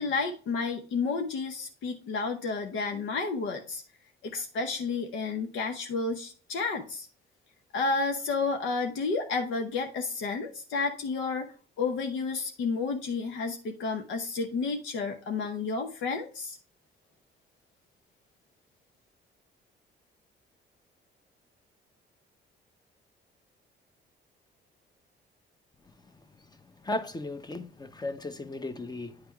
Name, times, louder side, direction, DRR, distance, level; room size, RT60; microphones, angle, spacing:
voice 1, 0.0-3.8 4.2-7.1 7.7-11.5 11.8-16.6, left 4 dB, 80° left, 0.8 m, -31 dB
voice 2, 26.8-29.2, left 2 dB, 20° left, 0.8 m, -35 dB
9.7 x 3.4 x 4.6 m
cardioid pair, 90°, 20 cm